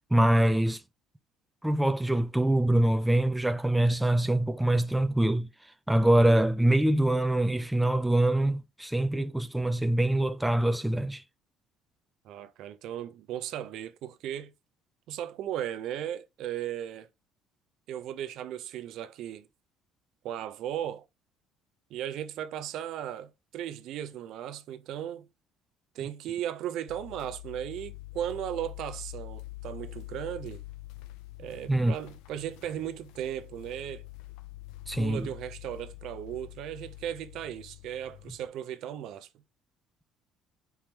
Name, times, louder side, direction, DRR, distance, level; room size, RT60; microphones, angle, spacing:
voice 1, 0.1-0.8 1.6-5.5 5.9-11.2 31.7-32.0 34.9-35.3, right 1 dB, 5° right, 0.3 m, -24 dB
voice 2, 12.2-14.5 15.1-17.1 17.9-19.5 20.2-21.0 21.9-25.3 25.9-30.6 31.4-34.0 34.9-39.3, right 11 dB, 65° right, 0.6 m, -36 dB
sound 1, 26.9-38.5, left 18 dB, 85° left, 0.4 m, -45 dB
4.6 x 3.6 x 2.8 m
cardioid pair, 120°, 0 cm